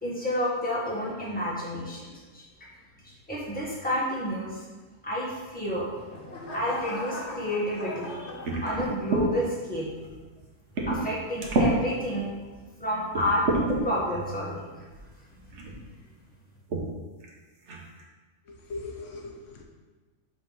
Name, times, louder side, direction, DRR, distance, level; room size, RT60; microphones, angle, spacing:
voice 1, 0.0-2.4 3.0-4.6 5.0-5.9 6.5-8.3 8.6-9.9 10.9-12.3 12.8-14.7 15.7-15.9, equal, 5° left, -6 dB, 1.6 m, -30 dB
sound 1, 5.6-9.2 9.7-10.1, left 2 dB, 65° left, 1.5 m, -39 dB
sound 2, 8.4-9.3 10.0-10.1 10.7-11.1 11.4-11.7 12.4-12.5 13.1-13.8 14.9-15.0 15.5-15.8 16.7-16.9 17.2-17.3 17.7-18.0, right 2 dB, 75° right, 1.3 m, -27 dB
voice 2, 18.5-19.6, left 3 dB, 85° left, 1 dB, 1.2 m, -39 dB
5.6 x 3.9 x 5.6 m, 1.3 s
omnidirectional pair, 1.2 m